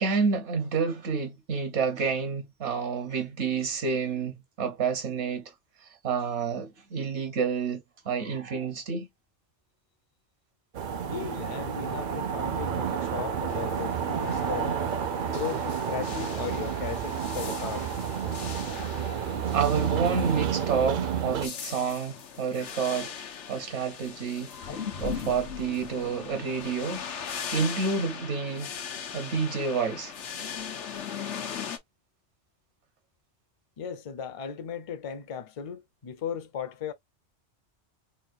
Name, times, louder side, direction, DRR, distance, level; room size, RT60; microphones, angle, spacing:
voice 1, 0.0-5.4 5.8-9.1 19.5-23.1 23.5-27.0 27.5-28.8 29.1-30.1, right 5 dB, 80° right, 1.1 m, -29 dB
sound 1, 10.7-21.5, right 8 dB, 60° right, 0.6 m, -30 dB
voice 2, 11.0-14.8 15.3-17.9 19.0-19.1 33.8-36.9, left 8 dB, 40° left, 0.5 m, -37 dB
sound 2, 13.5-31.8, left 7 dB, 85° left, 1.1 m, -40 dB
sound 3, 24.6-29.1 29.5-29.6, left 6 dB, 65° left, 1.1 m, -39 dB
4.4 x 2.2 x 2.4 m
omnidirectional pair, 1.2 m